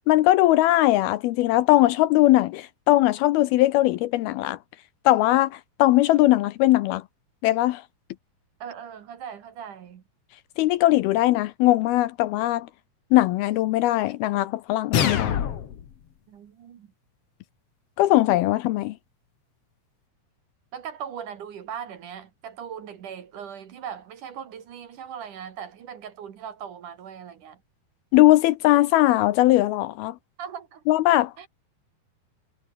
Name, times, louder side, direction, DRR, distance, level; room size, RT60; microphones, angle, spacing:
voice 1, 0.1-4.6 5.1-7.0 7.4-7.8 10.6-12.7 13.1-15.4 18.0-18.9 28.1-30.2 30.9-31.5, left 16 dB, 80° left, 2.4 m, -20 dB
voice 2, 8.6-10.0 16.3-16.9 20.7-27.6 30.4-30.8 31.4-31.5, right 8 dB, 55° right, 2.9 m, -39 dB
sound 1, 14.9-15.9, left 9 dB, 50° left, 1.9 m, -25 dB
omnidirectional pair, 4.8 m